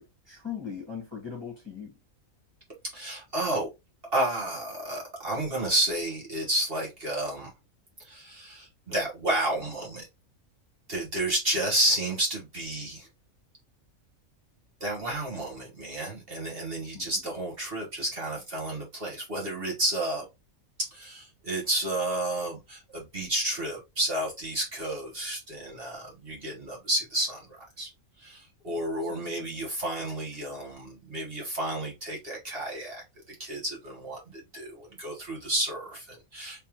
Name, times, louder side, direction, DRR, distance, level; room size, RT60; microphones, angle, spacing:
voice 1, 0.0-2.0 16.9-17.1 29.1-29.6, left 7 dB, 20° left, 1.4 m, -40 dB
voice 2, 2.9-3.7 4.0-7.5 8.0-10.1 10.9-13.1 14.8-20.3 20.9-27.9 28.2-36.7, right 1 dB, 45° right, 1.4 m, -31 dB
3.5 x 3.3 x 2.9 m
omnidirectional pair, 1.4 m